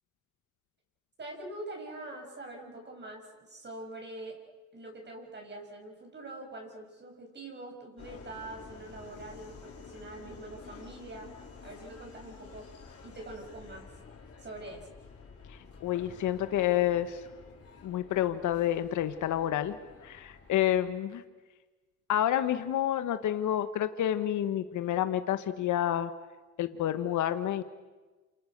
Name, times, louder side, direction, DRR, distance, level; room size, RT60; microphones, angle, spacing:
voice 1, 1.2-4.4 4.7-11.3 11.6-12.7 13.0-13.9 14.4-14.9, right 2 dB, 35° right, 1 dB, 7.8 m, -44 dB
Subway metro underground, 8.0-20.8, left 5 dB, 50° left, 5.6 m, -51 dB
voice 2, 15.5-17.2 17.8-19.8 20.0-21.2 22.1-26.1 26.6-27.6, left 11 dB, 75° left, 10 dB, 1.3 m, -29 dB
28.5 x 27.5 x 6.7 m, 1.3 s
cardioid pair, 90°, 30 cm